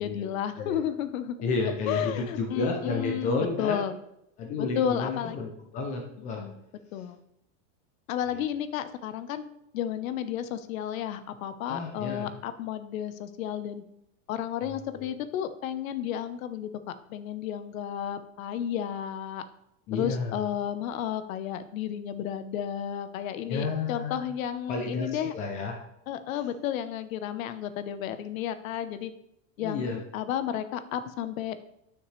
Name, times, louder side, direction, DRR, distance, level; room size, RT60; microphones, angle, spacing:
voice 1, 0.0-1.4 1.9-3.9 4.6-5.4 6.3-6.6 6.9-7.2 8.1-9.4 9.7-13.8 14.3-16.7 17.1-19.4 19.9-25.3 26.1-29.1 29.6-31.6, left 10 dB, 75° left, 11 dB, 0.9 m, -32 dB
voice 2, 1.4-3.8 4.4-6.4 8.3-8.4 11.7-12.3 14.6-15.1 19.9-20.4 23.5-24.3 24.7-25.7 29.6-30.0, left 3 dB, 20° left, 2 dB, 0.4 m, -31 dB
10.5 x 6.5 x 3.2 m, 0.80 s
supercardioid pair, 175°, 41 cm